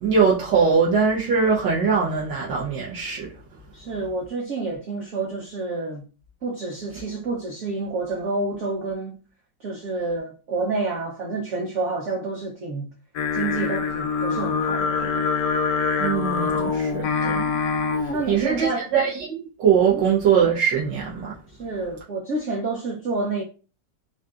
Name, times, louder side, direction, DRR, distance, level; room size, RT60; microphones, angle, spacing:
voice 1, 0.0-3.3 16.0-17.5 18.0-21.3, right 6 dB, 80° right, 1.3 m, -22 dB
voice 2, 3.7-6.0 6.4-9.2 9.6-12.9 13.3-15.3 18.1-18.9 19.9-20.0 21.6-23.4, right 3 dB, 60° right, 0.8 m, -29 dB
Singing, 13.2-18.3, left 5 dB, 70° left, 0.8 m, -24 dB
3.7 x 2.6 x 2.3 m
omnidirectional pair, 1.9 m